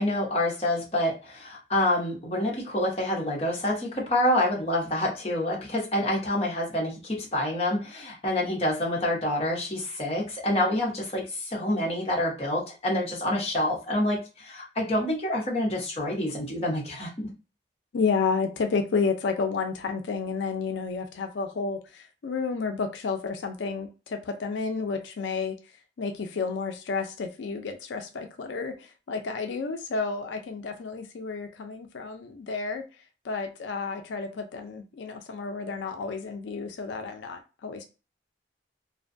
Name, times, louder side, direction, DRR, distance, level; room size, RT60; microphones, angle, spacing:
voice 1, 0.0-17.3, left 1 dB, 35° left, 0.8 m, -27 dB
voice 2, 17.9-25.6 26.0-32.8 33.2-37.8, left 4 dB, 85° left, 0.4 m, -31 dB
2.5 x 2.2 x 2.5 m
head